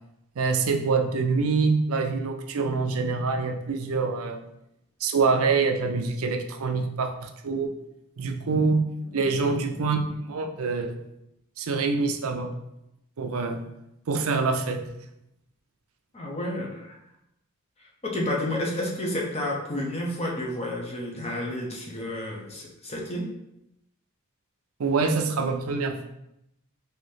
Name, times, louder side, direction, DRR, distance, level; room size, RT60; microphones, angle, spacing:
voice 1, 0.4-4.4 5.0-7.8 8.2-8.8 9.1-11.0 11.6-12.5 13.2-13.6 14.1-14.8 24.8-26.1, right 4 dB, 70° right, 5 dB, 0.5 m, -25 dB
voice 2, 9.0-9.3 16.1-17.0 18.0-23.3, left 1 dB, 30° left, -2 dB, 0.7 m, -31 dB
3.8 x 2.8 x 3.3 m, 0.83 s
head